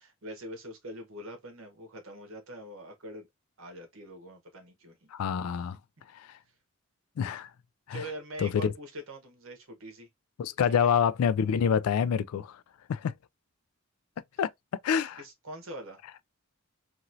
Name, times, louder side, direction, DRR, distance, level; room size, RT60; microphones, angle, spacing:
voice 1, 0.0-3.3 3.6-5.1 7.9-10.1 10.7-10.9 15.2-16.0, right 1 dB, 65° right, 1.1 m, -43 dB
voice 2, 5.1-5.8 6.2-6.3 7.2-7.5 7.9-8.0 8.4-8.7 10.4-12.6 12.9-13.1 14.4-14.5 14.8-15.2, left 7 dB, 85° left, 0.3 m, -27 dB
2.9 x 2.6 x 2.5 m
head